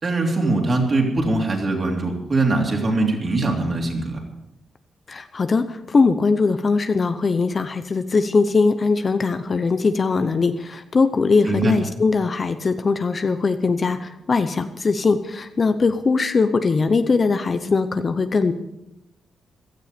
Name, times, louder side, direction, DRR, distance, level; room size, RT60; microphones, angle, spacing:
voice 1, 0.0-4.2 11.4-11.8, right 2 dB, 35° right, 1 dB, 3.1 m, -22 dB
voice 2, 5.1-18.5, left 4 dB, 35° left, 9 dB, 0.7 m, -20 dB
16.0 x 13.0 x 5.1 m, 0.88 s
wide cardioid pair, 145°, 0 cm